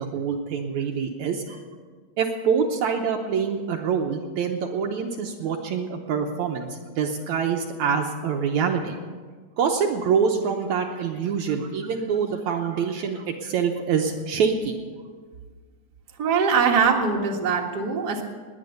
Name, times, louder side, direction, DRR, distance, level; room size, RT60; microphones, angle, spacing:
voice 1, 0.0-1.6 2.2-9.0 9.6-14.8, right 6 dB, 70° right, 3 dB, 2.1 m, -25 dB
voice 2, 16.2-18.2, right 6 dB, 40° right, 0 dB, 1.8 m, -22 dB
20.0 x 9.7 x 6.7 m, 1.5 s
omnidirectional pair, 3.7 m